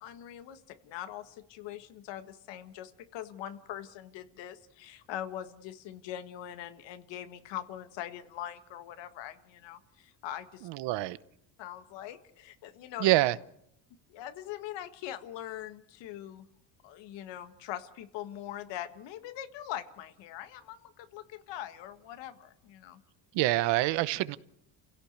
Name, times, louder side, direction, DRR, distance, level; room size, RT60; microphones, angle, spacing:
voice 1, 0.0-10.7 11.6-13.1 14.1-16.5 16.8-23.0, left 11 dB, 70° left, 1.7 m, -42 dB
voice 2, 10.7-11.2 13.0-13.4 23.3-24.4, right 17 dB, 70° right, 0.9 m, -26 dB
29.0 x 16.5 x 6.7 m
cardioid pair, 140°, 44 cm